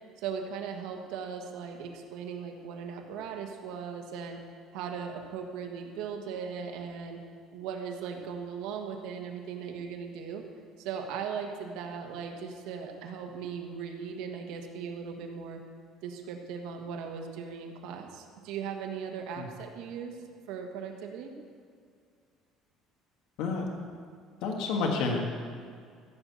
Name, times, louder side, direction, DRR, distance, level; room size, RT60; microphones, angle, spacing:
voice 1, 0.2-4.4 4.7-7.2 7.5-10.4 10.8-15.6 16.0-20.2 20.5-21.3, right 6 dB, 80° right, 3 dB, 1.5 m, -38 dB
voice 2, 24.4-25.3, left 4 dB, 75° left, 1 dB, 1.6 m, -29 dB
14.5 x 6.5 x 6.9 m, 2.2 s
cardioid pair, 140°, 0 cm